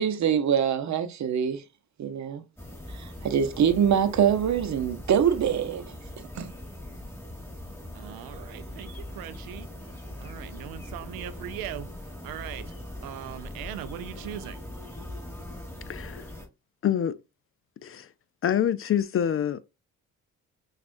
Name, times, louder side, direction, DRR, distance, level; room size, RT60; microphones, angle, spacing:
voice 1, 0.0-1.6 2.0-2.4 2.9-5.9 6.3-6.5, right 8 dB, 55° right, 0.7 m, -24 dB
sound 1, 2.6-16.5, left 1 dB, 5° left, 1.8 m, -41 dB
voice 2, 7.9-9.7 10.2-11.9 12.2-12.6 13.0-14.6, right 11 dB, 90° right, 0.5 m, -39 dB
voice 3, 15.9-16.3 16.8-17.2 17.8-18.1 18.4-19.6, left 9 dB, 40° left, 0.4 m, -26 dB
6.0 x 2.5 x 2.5 m
supercardioid pair, 60°, 35 cm